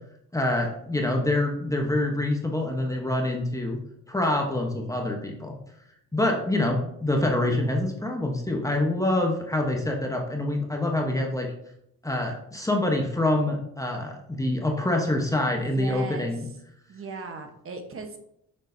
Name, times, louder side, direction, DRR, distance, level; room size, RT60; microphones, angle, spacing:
voice 1, 0.3-3.8 4.1-5.5 6.1-11.5 12.0-16.5, left 1 dB, 10° left, 1 dB, 1.1 m, -26 dB
voice 2, 15.7-16.6 16.9-18.2, right 4 dB, 45° right, 5 dB, 1.2 m, -37 dB
6.5 x 6.1 x 2.8 m, 0.75 s
cardioid pair, 90°, 30 cm